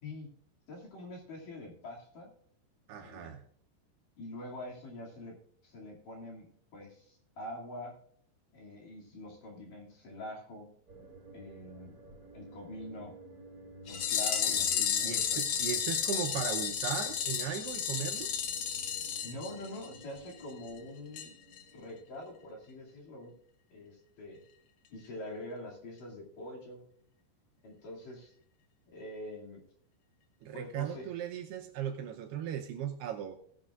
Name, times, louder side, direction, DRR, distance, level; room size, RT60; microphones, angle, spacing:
voice 1, 0.7-2.3 3.0-3.4 4.2-5.4 5.6-7.9 8.5-10.7 11.3-12.0 12.3-13.1 13.9-15.4 19.2-21.3 21.7-23.3 23.7-24.4 24.9-26.9 27.6-28.3 28.9-29.6 30.5-31.1, left 1 dB, 50° left, -2 dB, 3.8 m, -45 dB
voice 2, 2.9-3.4 14.5-18.3 30.4-33.4, right 9 dB, 75° right, 4 dB, 2.6 m, -38 dB
sound 1, 10.9-22.9, right 1 dB, 20° right, 5.3 m, -54 dB
sound 2, 13.9-20.0 20.3-20.4 20.7-20.8 21.2-21.3 21.6-21.7, left 8 dB, 90° left, 1.5 m, -32 dB
18.0 x 10.5 x 2.5 m, 0.62 s
omnidirectional pair, 5.2 m